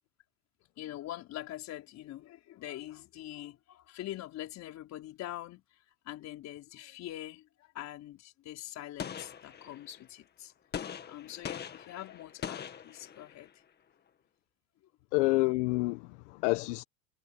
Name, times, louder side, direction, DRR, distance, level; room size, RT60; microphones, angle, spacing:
voice 1, 0.8-5.6 6.0-10.5 11.0-13.5, left 13 dB, 45° left, 4.7 m, -44 dB
Gunshot gunfire, 9.0-10.0 10.7-13.5, left 8 dB, 25° left, 1.9 m, -42 dB
voice 2, 15.1-16.8, left 23 dB, 65° left, 1.1 m, -28 dB
supercardioid pair, 120°, 38 cm